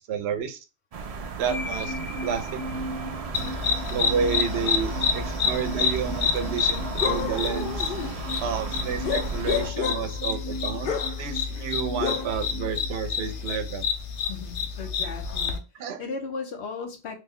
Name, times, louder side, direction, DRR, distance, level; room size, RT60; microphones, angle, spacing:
voice 1, 0.1-0.6 1.4-1.9 2.2-2.6 3.9-7.9 8.4-13.9 15.8-16.0, right 6 dB, 75° right, 0.8 m, -30 dB
sound 1, 0.9-9.7, right 4 dB, 50° right, 0.4 m, -35 dB
sound 2, 1.5-13.5, equal, 35° left, 0.3 m, -38 dB
sound 3, 3.3-15.6, left 6 dB, 60° left, 0.7 m, -28 dB
voice 2, 14.3-17.2, left 4 dB, 90° left, 1.1 m, -36 dB
3.1 x 2.1 x 3.5 m
omnidirectional pair, 1.1 m